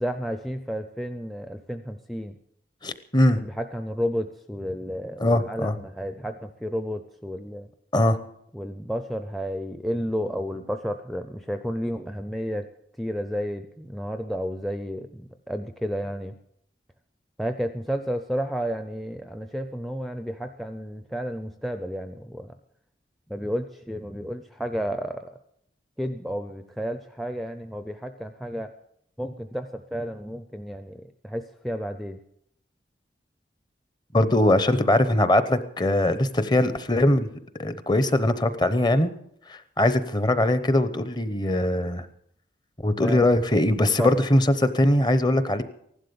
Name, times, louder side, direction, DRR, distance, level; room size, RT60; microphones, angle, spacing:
voice 1, 0.0-2.3 3.4-7.7 8.5-12.7 13.0-16.3 17.4-22.5 23.3-25.3 26.0-28.7 29.2-32.2 43.0-43.3 44.0-44.2, equal, ahead, 8 dB, 0.5 m, -31 dB
voice 2, 2.8-3.4 5.2-5.8 7.9-8.2 34.1-37.3 37.6-39.1 39.5-42.1 42.8-45.6, left 1 dB, 25° left, 12 dB, 0.8 m, -21 dB
15.5 x 11.5 x 6.9 m, 0.72 s
head